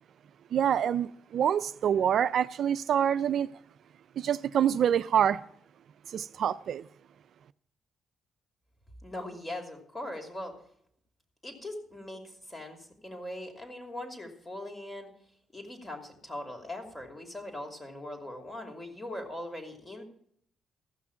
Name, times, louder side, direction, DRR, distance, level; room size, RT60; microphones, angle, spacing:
voice 1, 0.5-3.5 4.2-5.4 6.1-6.8, right 9 dB, 65° right, 0.4 m, -26 dB
voice 2, 9.0-10.6 11.4-15.1 15.5-20.0, left 1 dB, 20° left, 2.7 m, -40 dB
15.0 x 6.1 x 7.0 m
cardioid pair, 90°, 0 cm